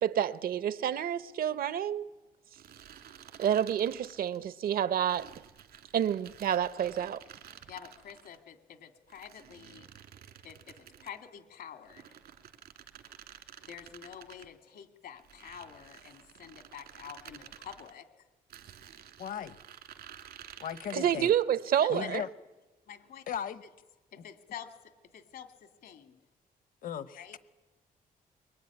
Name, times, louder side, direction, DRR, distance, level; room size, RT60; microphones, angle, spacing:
voice 1, 0.0-2.1 3.4-5.3 5.9-7.2 20.9-22.2, right 9 dB, 70° right, 0.8 m, -29 dB
sound 1, 2.5-4.4 5.0-8.4 9.1-11.2 11.8-14.5 15.2-17.9 18.5-21.5, right 9 dB, 85° right, 2.4 m, -52 dB
voice 2, 7.7-9.9 10.4-12.2 13.7-18.1 21.8-22.2 22.9-23.2 24.1-26.2 27.1-27.4, left 9 dB, 80° left, 2.7 m, -47 dB
voice 3, 19.2-19.6 20.6-21.3 21.9-22.3 23.3-23.6 26.8-27.4, left 8 dB, 60° left, 1.1 m, -37 dB
24.0 x 23.0 x 9.9 m
cardioid pair, 140°, 16 cm